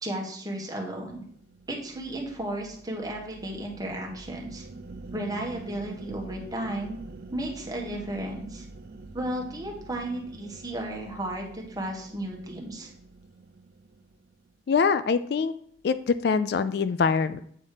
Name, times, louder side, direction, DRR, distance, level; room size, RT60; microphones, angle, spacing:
voice 1, 0.0-1.2 1.7-4.6 5.1-7.0 7.3-8.6 9.1-12.9, right 1 dB, 20° right, 0 dB, 1.5 m, -34 dB
sound 1, 1.0-14.5, right 3 dB, 50° right, 0.4 m, -46 dB
voice 2, 14.7-15.5 15.8-17.4, left 5 dB, 55° left, 13 dB, 0.3 m, -24 dB
8.7 x 4.2 x 4.9 m, 0.62 s
head